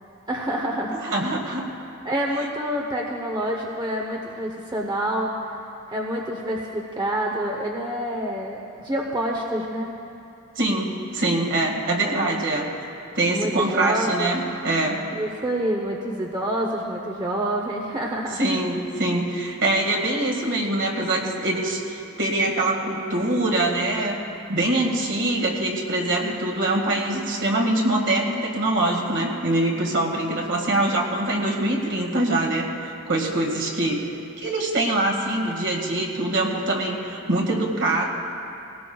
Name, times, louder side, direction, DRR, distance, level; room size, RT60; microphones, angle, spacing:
voice 1, 0.3-1.1 2.0-5.4 5.9-9.9 13.3-14.3 15.1-18.4, right 1 dB, 20° right, 0 dB, 0.8 m, -27 dB
voice 2, 0.9-1.7 10.6-12.7 13.1-15.0 18.4-24.2 24.5-34.0 34.4-38.1, right 2 dB, 55° right, 0 dB, 1.9 m, -24 dB
20.0 x 17.5 x 2.3 m, 2.6 s
head